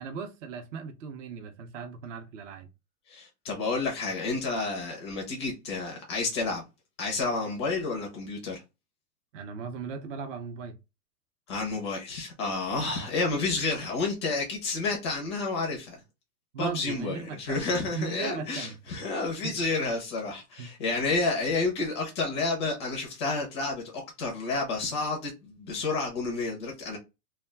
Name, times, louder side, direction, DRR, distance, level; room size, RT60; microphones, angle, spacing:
voice 1, 0.0-2.7 9.3-10.8 16.5-18.8 19.4-19.6 20.6-20.7, right 6 dB, 50° right, 0.7 m, -37 dB
voice 2, 3.1-6.6 7.0-8.6 11.5-16.0 16.6-27.0, left 3 dB, 20° left, 0.4 m, -30 dB
2.3 x 2.2 x 3.3 m
hypercardioid pair, 150°, 48 cm